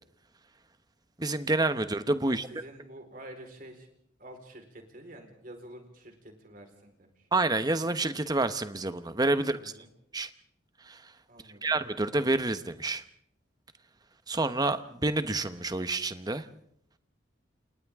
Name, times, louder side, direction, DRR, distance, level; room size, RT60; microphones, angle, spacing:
voice 1, 1.2-2.5 7.3-9.7 10.1-10.3 10.9-11.0 11.6-13.0 14.3-16.4, right 2 dB, 20° right, 10 dB, 1.0 m, -28 dB
voice 2, 2.3-3.9 4.2-7.3 9.4-9.9 11.3-11.8, right 1 dB, 50° right, 4 dB, 4.4 m, -49 dB
29.0 x 28.5 x 3.7 m, 0.69 s
head